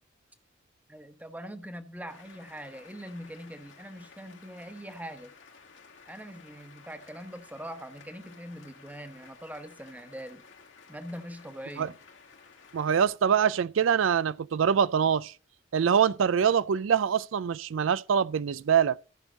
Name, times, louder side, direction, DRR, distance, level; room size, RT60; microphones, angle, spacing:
voice 1, 0.9-5.3 6.1-10.4 10.9-12.0, equal, 10° right, 1.1 m, -42 dB
sound 1, 2.1-13.1, left 5 dB, 70° left, 2.2 m, -54 dB
voice 2, 12.7-15.3 15.7-19.0, right 7 dB, 85° right, 0.4 m, -24 dB
14.5 x 6.2 x 3.9 m
head